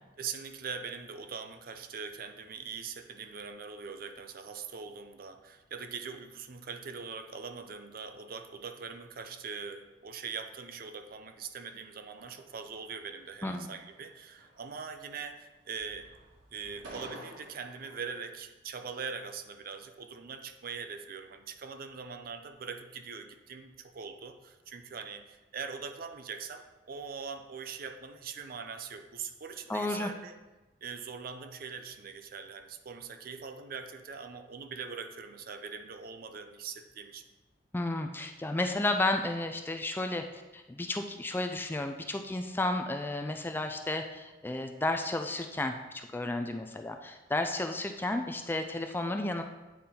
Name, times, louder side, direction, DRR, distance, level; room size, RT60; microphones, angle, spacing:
voice 1, 0.2-16.1 16.5-30.4 30.8-37.2, right 5 dB, 50° right, 8 dB, 0.5 m, -42 dB
sound 1, 12.2-13.3 13.7-14.1 14.4-15.4 15.6-18.2, right 1 dB, 90° right, 2.1 m, -51 dB
voice 2, 13.4-13.8 29.7-30.1 37.7-49.4, left 2 dB, 10° left, 6 dB, 0.3 m, -32 dB
8.5 x 3.8 x 4.2 m, 1.1 s
head